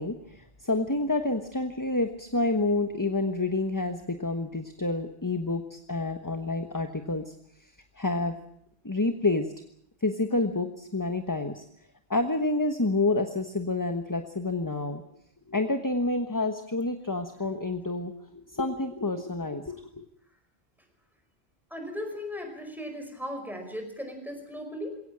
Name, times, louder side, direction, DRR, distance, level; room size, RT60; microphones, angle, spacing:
voice 1, 0.0-7.3 8.0-8.4 8.8-9.5 10.0-11.7 12.1-15.0 15.5-20.1, left 2 dB, 20° left, 7 dB, 1.2 m, -28 dB
voice 2, 21.7-25.0, left 1 dB, ahead, 4 dB, 5.2 m, -37 dB
21.5 x 18.0 x 8.8 m, 0.71 s
omnidirectional pair, 1.1 m